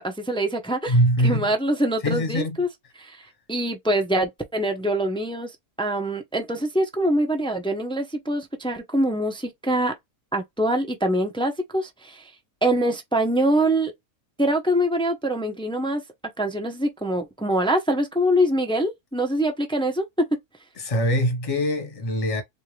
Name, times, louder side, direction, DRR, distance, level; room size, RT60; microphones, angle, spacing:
voice 1, 0.0-1.0 1.2-2.7 3.0-5.5 5.8-9.9 10.3-12.3 12.6-13.9 14.4-16.0 16.4-20.0, right 1 dB, 5° left, 0.4 m, -24 dB
voice 2, 0.9-1.5 2.0-2.6 20.8-22.4, equal, 25° left, 1.1 m, -23 dB
3.7 x 2.6 x 3.2 m
omnidirectional pair, 1.7 m